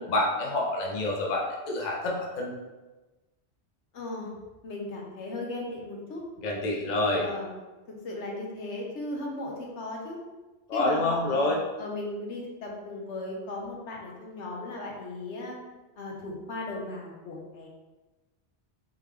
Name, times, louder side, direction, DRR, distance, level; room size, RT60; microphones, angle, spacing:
voice 1, 0.0-2.5 6.4-7.3 10.7-11.6, left 2 dB, 45° left, -2 dB, 0.7 m, -27 dB
voice 2, 3.9-4.3 4.6-6.2 7.2-7.5 8.0-10.2 10.7-11.5 11.8-15.5 15.9-17.7, left 2 dB, 90° left, -1 dB, 1.2 m, -37 dB
3.7 x 3.3 x 3.2 m, 1.1 s
omnidirectional pair, 1.1 m